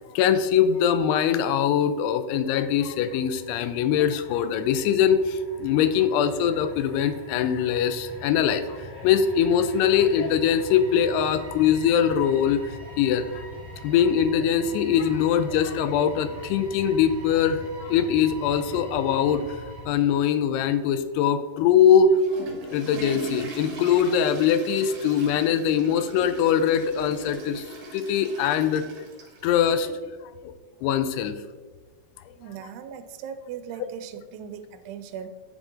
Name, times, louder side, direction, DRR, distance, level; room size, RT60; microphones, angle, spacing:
voice 1, 0.1-12.6 13.0-13.4 13.8-19.4 19.9-22.2 22.7-27.6 27.9-29.1 29.4-30.0 30.4-30.5 30.8-31.4, left 8 dB, 90° left, 11 dB, 2.6 m, -22 dB
sound 1, 2.5-19.9, right 1 dB, 30° right, 2.0 m, -43 dB
Water / Toilet flush, 21.9-29.8, right 4 dB, 65° right, 2.6 m, -40 dB
voice 2, 32.4-35.3, right 8 dB, 85° right, 9 dB, 2.6 m, -38 dB
10.5 x 3.8 x 3.6 m, 1.4 s
omnidirectional pair, 4.6 m